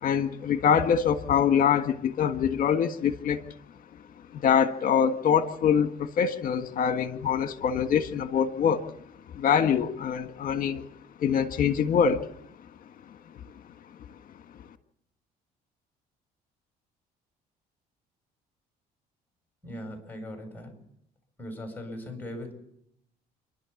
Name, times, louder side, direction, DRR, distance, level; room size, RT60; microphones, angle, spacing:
voice 1, 0.0-3.4 4.3-8.9 9.3-10.9 11.2-12.3, left 7 dB, 55° left, 8 dB, 1.6 m, -24 dB
voice 2, 19.6-20.7 21.4-22.5, left 1 dB, 10° left, 4 dB, 7.8 m, -39 dB
29.5 x 12.0 x 7.2 m, 0.75 s
cardioid pair, 110°, 17 cm